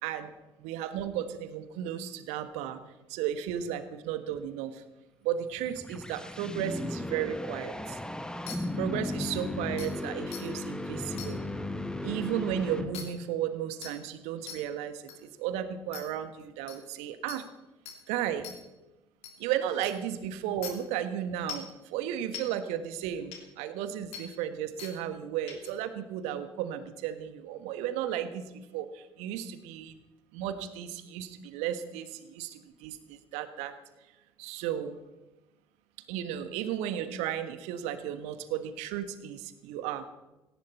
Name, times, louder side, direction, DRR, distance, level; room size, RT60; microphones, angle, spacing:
voice 1, 0.0-0.3 0.6-2.8 3.1-4.8 5.2-8.0 8.8-11.4 12.0-17.4 18.1-18.5 19.4-29.9 30.3-33.7 34.4-35.0 36.1-40.1, right 10 dB, 65° right, 11 dB, 1.4 m, -34 dB
sound 1, 5.4-13.3, left 2 dB, 5° left, 1.4 m, -36 dB
sound 2, 8.5-8.6 9.3-9.4 9.8-9.9 10.3-10.4 11.2-11.3 12.9-13.0 13.8-13.9 14.5-14.6 15.1-15.2 15.9-16.0 16.7-16.8 17.3-17.4 17.9-18.0 18.4-18.6 19.2-19.3 19.8-19.9 20.6-20.7 21.5-21.7 22.3-22.4 23.3-23.4 24.1-24.2 24.8-24.9 25.5-25.7, left 8 dB, 60° left, 3.3 m, -40 dB
18.0 x 17.5 x 4.3 m, 1.0 s
figure-of-eight pair, 50°, 12 cm